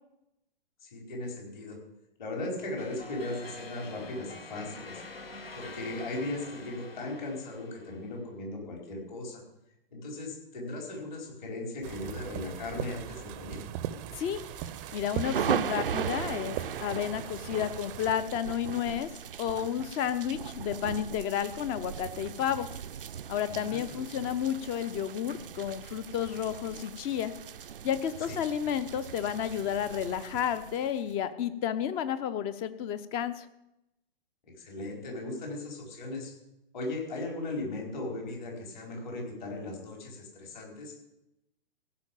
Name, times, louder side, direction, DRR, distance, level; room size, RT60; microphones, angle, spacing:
voice 1, 0.8-1.8 2.2-5.0 5.5-9.4 9.9-13.6 23.5-24.0 28.3-28.4 34.4-36.3 36.7-40.9, left 2 dB, 50° left, 0 dB, 4.8 m, -37 dB
sound 1, 2.8-8.3, left 2 dB, 75° left, 1.7 m, -46 dB
sound 2, 11.8-18.1, right 11 dB, 20° right, 0.6 m, -40 dB
sound 3, 14.2-31.1, right 8 dB, 65° right, 0.5 m, -38 dB
voice 2, 14.9-19.1 19.4-22.7 23.3-27.3 27.8-33.5, left 9 dB, 20° left, 13 dB, 0.6 m, -31 dB
15.5 x 5.8 x 8.9 m, 0.87 s
figure-of-eight pair, 115°, 29 cm